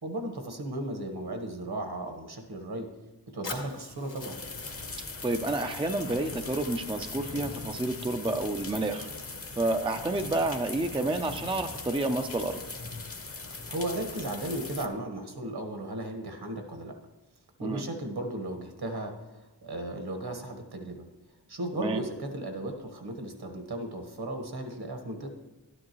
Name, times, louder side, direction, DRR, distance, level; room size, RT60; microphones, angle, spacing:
voice 1, 0.0-2.9 3.3-4.4 13.7-17.0 17.6-21.1 21.5-25.3, right 1 dB, 60° right, 4 dB, 1.5 m, -35 dB
Fire, 3.4-7.4, left 3 dB, 80° left, 1.8 m, -46 dB
sound 1, 4.2-14.9, left 3 dB, 30° left, 0.8 m, -40 dB
voice 2, 5.2-9.1 9.6-12.6 17.6-17.8 21.7-22.0, right 2 dB, 10° right, 6 dB, 0.5 m, -29 dB
12.0 x 9.9 x 3.1 m, 1.1 s
wide cardioid pair, 85°, 43 cm